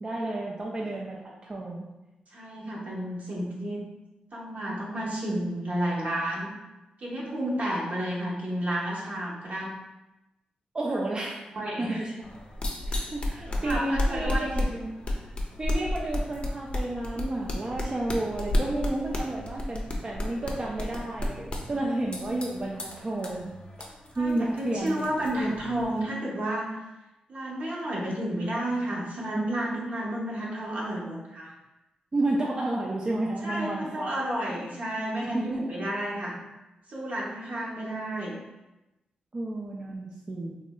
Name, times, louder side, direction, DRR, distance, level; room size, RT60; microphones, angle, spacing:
voice 1, 0.0-1.9 10.7-11.3 11.8-12.3 12.9-14.9 15.6-23.5 24.2-25.5 32.1-34.1 34.6-34.7 35.2-35.7 39.3-40.6, right 2 dB, 30° right, -2 dB, 0.4 m, -31 dB
voice 2, 2.3-3.8 4.3-6.5 7.0-9.7 10.9-11.0 11.5-12.0 13.6-14.7 21.7-21.9 24.1-26.8 27.3-31.6 33.4-36.4 36.9-38.4, right 1 dB, 60° right, -4 dB, 0.8 m, -31 dB
sound 1, 12.2-26.0, left 1 dB, 40° left, 0.5 m, -33 dB
3.1 x 2.7 x 2.2 m, 1.0 s
cardioid pair, 75°, 3 cm